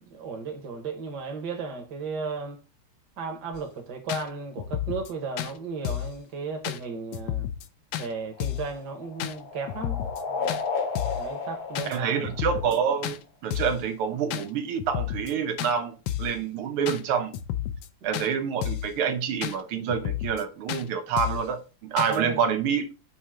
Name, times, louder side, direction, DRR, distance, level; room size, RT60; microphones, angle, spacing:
voice 1, 0.1-2.6 3.2-7.5 8.0-10.6 11.1-12.2 18.0-18.1 22.1-22.4, right 4 dB, 55° right, 1.8 m, -35 dB
sound 1, 3.5-3.6 4.1-4.2 4.6-5.1 5.4-5.5 5.8-6.2 6.6-6.8 7.1-7.7 7.9-8.1 8.4-8.7 9.2-9.3 9.7-10.2 10.5-10.6 11.0-11.3 11.7-12.0 12.2-12.8 13.0-13.2 13.5-13.8 14.3-14.5 14.8-15.3 15.6-15.7 16.1-16.4 16.9-17.0 17.3-17.9 18.1-18.3 18.6-18.9 19.4-19.6 19.9-20.4 20.7-20.8 21.2-21.5 22.0-22.2, left 12 dB, 75° left, 1.2 m, -31 dB
sound 2, 8.2-13.0, left 4 dB, 55° left, 1.5 m, -33 dB
voice 2, 11.9-15.9 16.2-17.3 18.0-22.8, right 7 dB, 85° right, 1.6 m, -27 dB
6.2 x 2.9 x 5.7 m
omnidirectional pair, 2.3 m